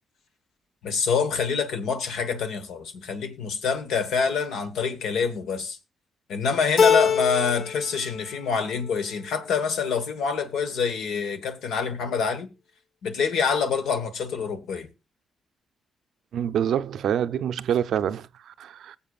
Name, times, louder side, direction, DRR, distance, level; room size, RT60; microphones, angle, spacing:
voice 1, 0.8-5.8 6.3-12.5 13.0-14.9, left 5 dB, 80° left, 1.3 m, -26 dB
Keyboard (musical), 6.8-7.9 8.2-8.9, left 7 dB, 60° left, 1.0 m, -23 dB
voice 2, 16.3-19.0, right 9 dB, 75° right, 0.4 m, -26 dB
20.0 x 7.2 x 2.4 m
cardioid pair, 75°, 0 cm